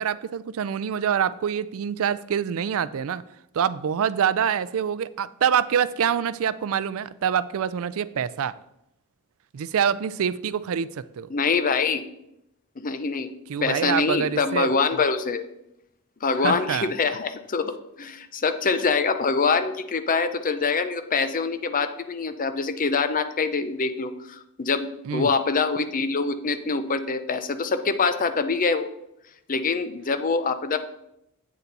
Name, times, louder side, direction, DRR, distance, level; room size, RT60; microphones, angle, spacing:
voice 1, 0.0-3.2 3.5-8.6 9.5-11.3 13.5-14.7 16.4-16.9 25.1-25.3, right 8 dB, 70° right, 17 dB, 0.4 m, -25 dB
voice 2, 11.3-12.0 12.8-13.3 13.6-15.4 16.2-28.9 29.5-30.8, left 4 dB, 40° left, 10 dB, 0.6 m, -25 dB
8.3 x 6.9 x 4.0 m, 0.82 s
head